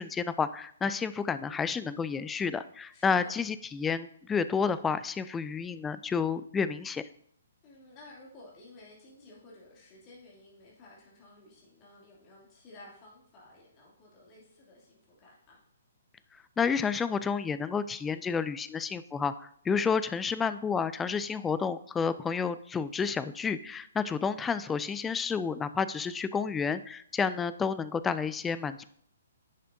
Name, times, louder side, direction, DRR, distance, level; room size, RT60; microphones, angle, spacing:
voice 1, 0.0-7.0 16.6-28.8, left 6 dB, 10° left, 14 dB, 0.3 m, -30 dB
voice 2, 2.9-3.4 7.6-15.6 24.2-24.4, left 2 dB, 25° left, -4 dB, 2.4 m, -54 dB
10.5 x 6.7 x 2.6 m, 0.65 s
figure-of-eight pair, 125°, 0 cm